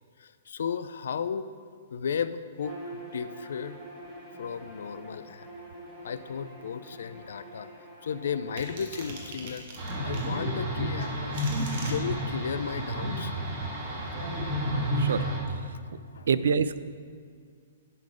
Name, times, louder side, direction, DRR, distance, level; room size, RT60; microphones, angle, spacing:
voice 1, 0.2-1.5 1.9-3.8 4.4-5.5 6.0-7.7 8.0-9.7 10.0-11.5 11.9-13.3 16.1-16.3, left 7 dB, 70° left, 13 dB, 0.3 m, -34 dB
Bowed string instrument, 2.6-9.3, right 1 dB, 5° right, 1.2 m, -45 dB
sound 1, 8.6-10.3 11.0-12.0, right 3 dB, 45° right, 1.3 m, -42 dB
sound 2, 9.8-15.4, equal, 30° right, 1.5 m, -30 dB
voice 2, 16.3-16.8, right 6 dB, 80° right, 14 dB, 0.3 m, -26 dB
10.5 x 3.8 x 5.0 m, 2.1 s
hypercardioid pair, 170°, 0 cm